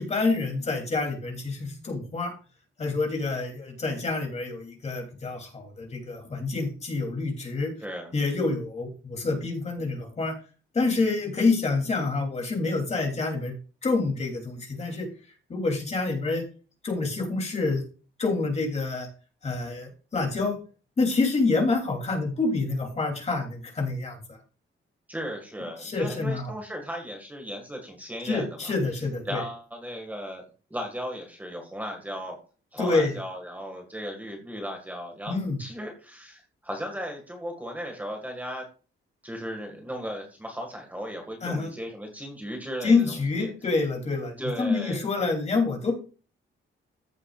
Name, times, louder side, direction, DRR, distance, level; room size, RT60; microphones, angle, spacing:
voice 1, 0.0-2.3 2.8-7.7 8.1-10.4 10.7-13.5 13.8-15.1 15.5-16.4 16.8-17.8 18.2-19.1 19.4-20.6 21.0-24.4 25.8-26.5 28.2-29.4 32.8-33.1 35.3-35.6 41.4-41.7 42.8-45.9, left 3 dB, 30° left, 1 dB, 3.1 m, -27 dB
voice 2, 7.8-8.1 25.1-28.7 29.3-30.4 30.7-32.4 32.7-38.6 39.2-43.5 44.4-45.1, equal, 5° right, 2 dB, 1.8 m, -36 dB
14.5 x 7.5 x 2.4 m, 0.36 s
wide cardioid pair, 175°, 21 cm